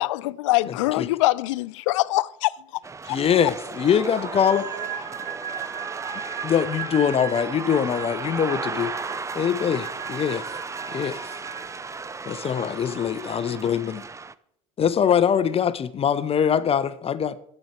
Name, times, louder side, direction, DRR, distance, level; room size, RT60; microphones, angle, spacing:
voice 1, 0.0-2.5 3.1-3.2, left 19 dB, 80° left, 0.5 m, -23 dB
voice 2, 0.7-1.1 3.1-4.6 6.4-8.9 9.3-10.4 10.9-11.3 12.3-14.0 14.8-17.4, left 8 dB, 35° left, 0.9 m, -23 dB
sound 1, 2.8-14.3, right 4 dB, 20° right, 0.6 m, -35 dB
voice 3, 4.0-6.8 12.4-13.6, right 2 dB, 65° right, 6.0 m, -45 dB
sound 2, 4.4-12.1, right 9 dB, 45° right, 1.1 m, -37 dB
13.5 x 9.0 x 4.5 m
hypercardioid pair, 70°, 16 cm